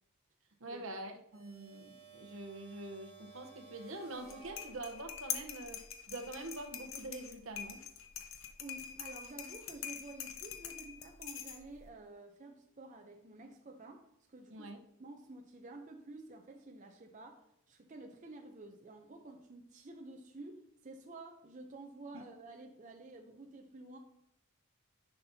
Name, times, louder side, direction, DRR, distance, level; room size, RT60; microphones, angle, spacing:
voice 1, 0.6-7.8 14.5-14.8 22.1-22.2, right 2 dB, 65° right, 5 dB, 0.9 m, -45 dB
sound 1, 1.3-5.2, right 5 dB, 30° left, 3.1 m, -57 dB
sound 2, 4.2-11.9, left 9 dB, 65° left, 0.9 m, -44 dB
voice 2, 8.6-14.7 15.0-24.0, right 2 dB, 35° right, 3 dB, 0.6 m, -51 dB
10.5 x 5.8 x 2.7 m, 0.79 s
head